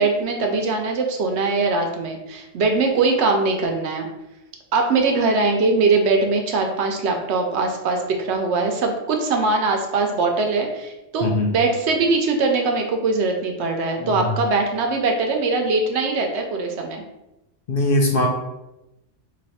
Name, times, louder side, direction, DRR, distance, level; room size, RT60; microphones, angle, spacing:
voice 1, 0.0-4.1 4.7-17.0, right 3 dB, 70° right, 3 dB, 0.8 m, -21 dB
voice 2, 17.7-18.3, left 1 dB, 55° left, 0 dB, 0.8 m, -20 dB
3.2 x 2.5 x 4.1 m, 0.94 s
omnidirectional pair, 1.3 m